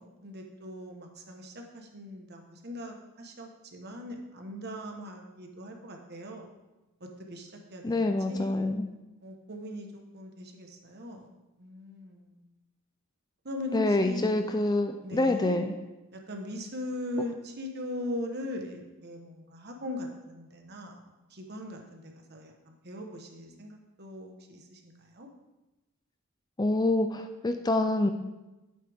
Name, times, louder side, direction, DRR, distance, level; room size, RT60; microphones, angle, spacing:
voice 1, 0.0-6.5 7.0-8.6 9.2-9.9 10.1-11.3 11.6-12.4 13.4-14.5 15.0-15.6 16.1-25.3, left 1 dB, 45° right, 2 dB, 1.3 m, -40 dB
voice 2, 7.8-8.9 13.7-15.7 26.6-28.1, left 2 dB, 20° left, 7 dB, 0.4 m, -26 dB
11.5 x 8.5 x 3.6 m, 1.1 s
head